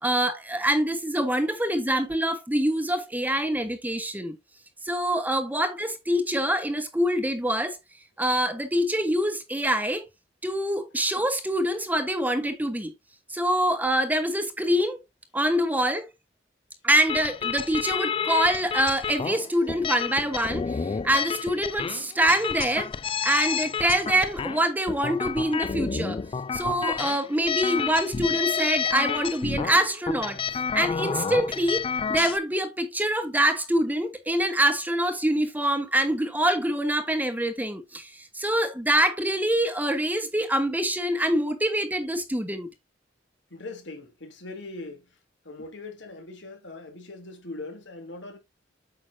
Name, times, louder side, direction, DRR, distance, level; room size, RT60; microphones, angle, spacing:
voice 1, 0.0-4.4 4.8-7.8 8.2-10.1 10.4-12.9 13.3-15.0 15.3-16.1 16.8-22.9 23.2-26.2 26.5-30.4 30.7-31.8 32.1-42.7, right 1 dB, 10° right, 1.1 m, -25 dB
sound 1, 17.1-32.4, left 6 dB, 30° left, 0.3 m, -30 dB
voice 2, 43.5-45.2 45.4-48.4, left 2 dB, 70° left, 3.0 m, -41 dB
8.9 x 6.1 x 2.7 m
head